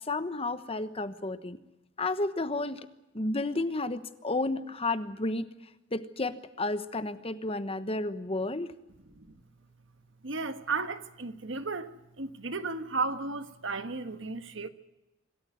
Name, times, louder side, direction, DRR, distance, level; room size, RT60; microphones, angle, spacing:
voice 1, 0.1-1.6 2.0-2.8 3.1-5.5 5.9-8.7, left 2 dB, 30° left, 1.1 m, -32 dB
voice 2, 9.1-9.4 10.2-14.7, right 4 dB, 70° right, 1.5 m, -34 dB
25.5 x 13.5 x 9.5 m
head